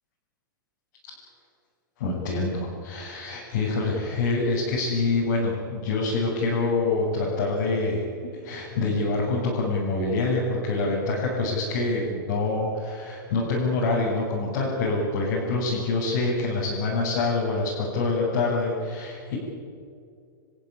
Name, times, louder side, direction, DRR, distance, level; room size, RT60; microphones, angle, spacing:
voice 1, 2.0-8.1 8.4-19.4, left 3 dB, 60° left, -6 dB, 7.9 m, -26 dB
29.0 x 15.0 x 10.0 m, 2.3 s
hypercardioid pair, 150°, 11 cm